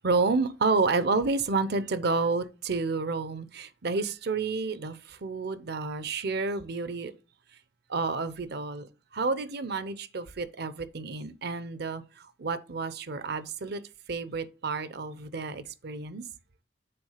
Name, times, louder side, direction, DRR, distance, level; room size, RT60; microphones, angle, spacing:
voice 1, 0.0-7.1 7.9-8.9 9.1-12.0 12.4-13.8 14.1-16.2, right 4 dB, 60° right, 0.7 m, -30 dB
6.9 x 3.6 x 5.6 m
head